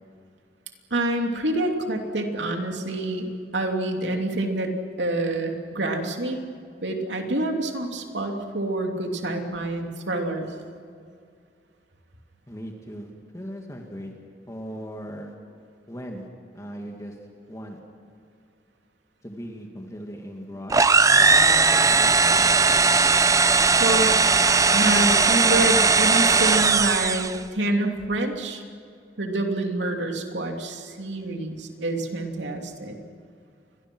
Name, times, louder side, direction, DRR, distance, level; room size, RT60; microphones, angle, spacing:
voice 1, 0.9-4.7 5.0-6.4 6.8-10.5 23.8-24.1 24.7-28.6 29.2-33.0, right 2 dB, 90° right, 3 dB, 2.9 m, -27 dB
voice 2, 12.5-14.1 14.5-15.3 15.9-16.3 16.5-17.2 17.5-17.8 19.2-20.8 21.2-22.5, equal, 20° left, 1 dB, 2.2 m, -38 dB
sound 1, 20.7-27.4, right 4 dB, 20° right, 0.6 m, -18 dB
29.5 x 23.5 x 6.3 m, 2.3 s
head